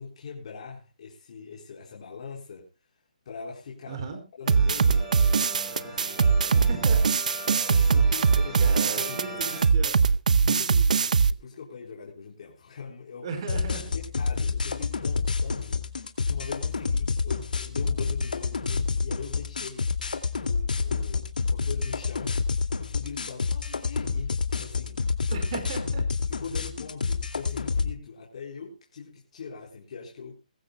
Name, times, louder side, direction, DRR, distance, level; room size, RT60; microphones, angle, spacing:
voice 1, 0.0-2.7 2.9-4.0 4.4-6.6 7.7-8.6 8.8-9.5 10.4-13.3 13.9-16.0 16.2-25.0 26.2-30.4, left 5 dB, 50° left, -2 dB, 4.2 m, -42 dB
voice 2, 3.9-4.2 6.5-7.0 8.3-10.1 13.2-13.9 25.3-26.0, right 5 dB, 35° right, 7 dB, 4.8 m, -36 dB
sound 1, 4.4-9.6, right 2 dB, 15° right, 7.4 m, -40 dB
sound 2, 4.5-11.3, right 5 dB, 60° right, 0.7 m, -21 dB
sound 3, 13.5-27.9, left 4 dB, 80° left, 2.5 m, -28 dB
21.5 x 15.0 x 2.3 m, 0.28 s
hypercardioid pair, 165°, 4 cm